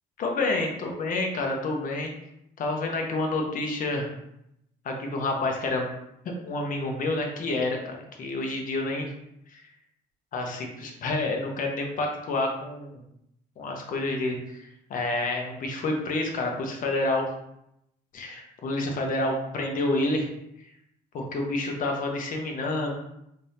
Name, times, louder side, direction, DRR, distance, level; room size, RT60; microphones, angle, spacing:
voice 1, 0.2-2.1 2.6-4.1 4.8-5.9 6.2-9.1 9.5-9.7 10.3-12.9 13.6-17.2 18.1-20.3 20.6-20.7 21.1-22.9, left 2 dB, 55° left, 2 dB, 0.9 m, -29 dB
3.4 x 3.4 x 2.8 m, 0.80 s
cardioid pair, 110°, 17 cm